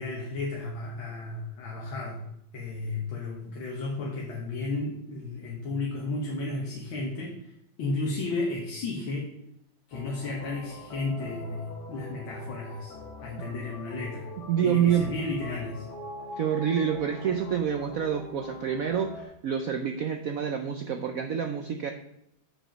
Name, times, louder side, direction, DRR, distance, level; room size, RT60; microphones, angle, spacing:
voice 1, 0.0-2.2 2.5-7.5 7.8-9.3 9.9-12.9 13.2-14.3 14.6-15.9, left 2 dB, 85° left, -2 dB, 2.0 m, -33 dB
sound 1, 9.9-19.2, left 2 dB, 60° left, 1.9 m, -43 dB
voice 2, 14.5-15.1 16.4-21.9, right 8 dB, 75° right, 6 dB, 0.7 m, -27 dB
7.7 x 5.1 x 5.1 m, 0.77 s
omnidirectional pair, 2.1 m